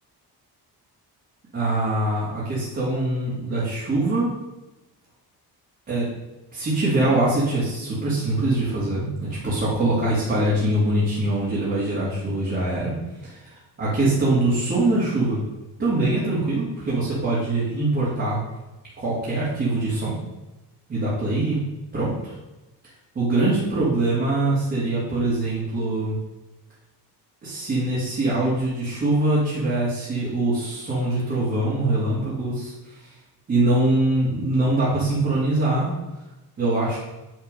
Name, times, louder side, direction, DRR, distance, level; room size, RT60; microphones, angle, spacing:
voice 1, 1.5-4.3 5.9-6.1 6.5-12.9 13.2-15.4 15.8-18.4 19.0-20.2 20.9-21.6 21.9-22.4 23.1-26.2 27.4-33.1 33.5-35.9 36.6-37.0, right 2 dB, 30° right, -10 dB, 2.4 m, -23 dB
9.3 x 4.3 x 5.2 m, 1.0 s
cardioid pair, 180°, 39 cm